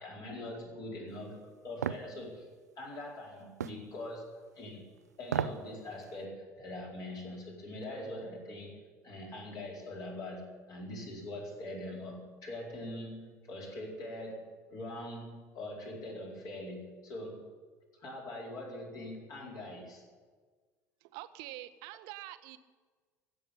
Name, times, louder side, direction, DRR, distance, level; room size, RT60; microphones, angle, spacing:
voice 1, 0.0-2.5 2.8-4.8 5.2-17.4 18.0-20.0, left 1 dB, 45° left, -2 dB, 4.6 m, -43 dB
sound 1, 1.8-2.1 3.6-3.8 5.2-5.6 6.0-6.1, right 8 dB, 80° right, 0.4 m, -33 dB
voice 2, 21.0-22.6, right 16 dB, 55° right, 13 dB, 0.8 m, -45 dB
16.0 x 7.9 x 10.0 m, 1.5 s
figure-of-eight pair, 65°, 9 cm